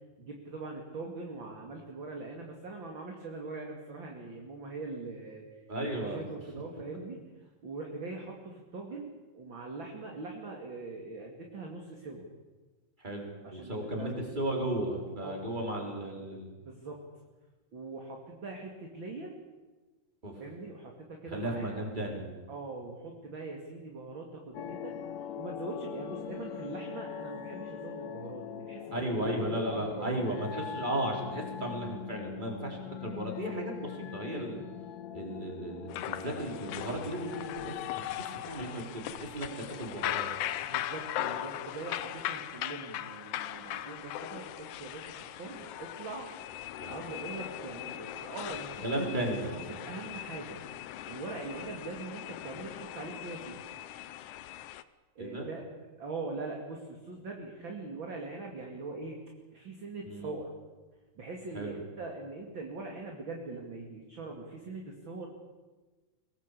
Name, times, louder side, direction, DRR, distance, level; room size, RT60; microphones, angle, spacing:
voice 1, 0.2-5.4 5.8-7.2 7.6-12.3 13.4-14.2 15.2-15.9 16.6-17.0 17.7-19.3 20.4-21.8 22.5-24.9 25.4-30.3 40.6-46.3 46.8-49.2 49.7-50.6 51.1-53.8 55.2-55.6 56.0-59.2 59.5-60.5 61.1-65.3, right 3 dB, 35° right, 1 dB, 2.6 m, -42 dB
voice 2, 5.7-6.2 13.0-16.5 20.2-20.3 21.3-22.3 28.9-34.6 35.1-39.5 39.8-40.3 46.8-47.0 48.8-49.7 55.2-55.5 60.1-60.3 61.5-61.8, right 1 dB, 10° right, 1 dB, 4.4 m, -35 dB
sound 1, 24.5-38.0, left 9 dB, 70° left, 2.2 m, -42 dB
sound 2, 35.9-54.8, left 13 dB, 85° left, 1.7 m, -39 dB
24.5 x 19.5 x 8.5 m, 1.3 s
omnidirectional pair, 4.7 m